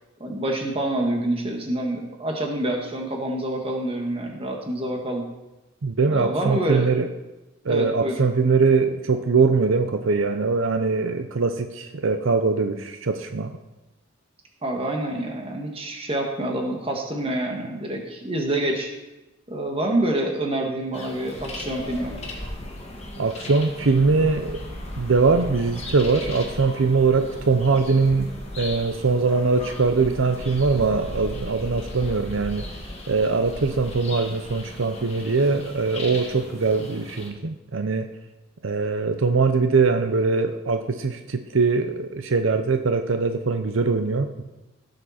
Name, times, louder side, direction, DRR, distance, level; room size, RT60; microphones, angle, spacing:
voice 1, 0.2-5.2 6.1-6.9 7.7-8.2 14.6-18.9 19.5-22.1, right 1 dB, 25° right, 1 dB, 1.6 m, -27 dB
voice 2, 5.8-7.1 7.6-13.5 23.2-24.6 25.0-32.7 33.1-38.1 38.6-44.4, right 4 dB, 75° right, 7 dB, 0.7 m, -22 dB
sound 1, 20.9-37.3, left 1 dB, 30° left, 1.9 m, -36 dB
16.0 x 6.8 x 4.3 m, 1.0 s
head